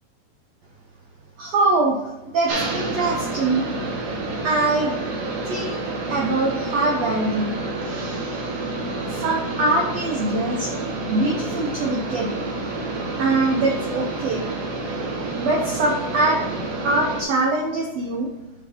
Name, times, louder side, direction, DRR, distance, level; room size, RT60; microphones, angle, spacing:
voice 1, 1.4-2.0 2.3-3.7 4.4-4.9 5.4-5.8 6.1-7.5 9.1-12.3 13.2-14.4 15.4-16.4 16.8-18.3, right 2 dB, 90° right, 0 dB, 1.4 m, -23 dB
sound 1, 2.5-17.2, right 2 dB, 60° right, 1.9 m, -29 dB
5.8 x 5.8 x 4.3 m, 1.1 s
omnidirectional pair, 4.3 m